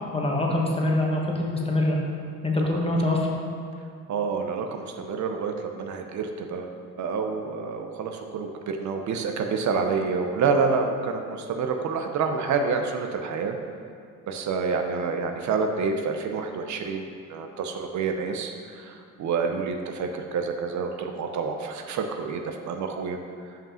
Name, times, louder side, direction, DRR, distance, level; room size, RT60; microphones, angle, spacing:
voice 1, 0.1-2.0 2.4-3.2, left 1 dB, 20° left, -1 dB, 1.3 m, -24 dB
voice 2, 4.1-13.6 14.3-23.2, right 5 dB, 70° right, 5 dB, 0.7 m, -28 dB
5.3 x 5.2 x 5.6 m, 2.3 s
cardioid pair, 90°, 30 cm